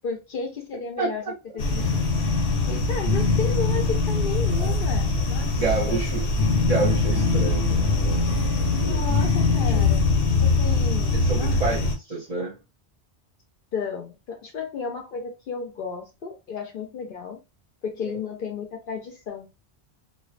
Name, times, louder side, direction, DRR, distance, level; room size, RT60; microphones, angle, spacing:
voice 1, 0.0-2.0 2.7-6.0 8.7-10.1 10.4-11.6 13.7-17.4 17.8-19.5, left 5 dB, 60° left, 0.6 m, -33 dB
sound 1, 1.6-12.0, left 3 dB, 90° left, 1.0 m, -22 dB
voice 2, 5.6-6.3 6.6-8.2 8.8-9.0 9.7-9.8 11.1-12.6, right 4 dB, 40° right, 0.7 m, -28 dB
2.4 x 2.2 x 2.4 m
omnidirectional pair, 1.1 m